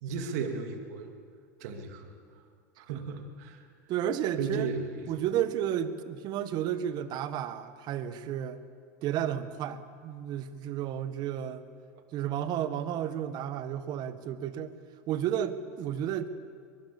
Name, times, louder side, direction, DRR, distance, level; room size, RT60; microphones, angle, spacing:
voice 1, 0.0-1.1 1.6-2.1 2.8-3.6 4.4-5.1, right 5 dB, 70° right, 5 dB, 2.7 m, -35 dB
voice 2, 3.9-4.7 5.1-8.6 9.0-11.7 12.1-14.7 15.1-16.3, right 10 dB, 50° right, 12 dB, 1.6 m, -32 dB
23.5 x 20.5 x 7.2 m, 2.2 s
hypercardioid pair, 95°, 9 cm